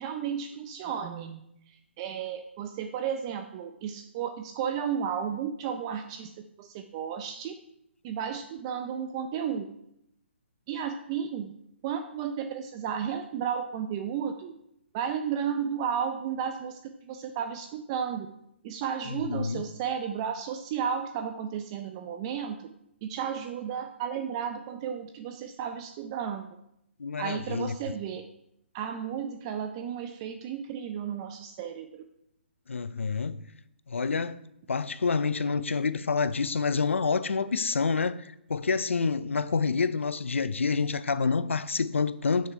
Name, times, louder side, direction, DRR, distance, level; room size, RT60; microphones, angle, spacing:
voice 1, 0.0-1.4 2.0-6.3 6.6-7.5 8.0-9.6 10.7-11.5 11.8-14.5 14.9-18.3 18.6-22.6 23.0-26.5 27.2-28.3 28.7-32.0, right 8 dB, 25° right, 0.5 m, -33 dB
voice 2, 19.1-19.6 27.0-27.8 32.7-33.4 33.9-34.4 34.7-42.5, left 5 dB, 85° left, 0.6 m, -28 dB
8.4 x 6.6 x 4.6 m
hypercardioid pair, 150°, 7 cm